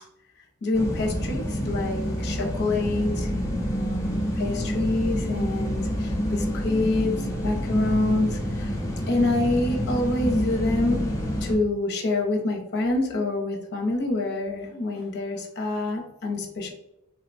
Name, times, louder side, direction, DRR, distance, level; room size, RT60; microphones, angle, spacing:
voice 1, 0.6-8.7 9.1-11.1 11.4-16.7, left 2 dB, 50° left, 0 dB, 0.7 m, -27 dB
sound 1, 0.7-11.5, equal, 15° left, 0.6 m, -28 dB
3.6 x 2.1 x 2.5 m, 0.90 s
head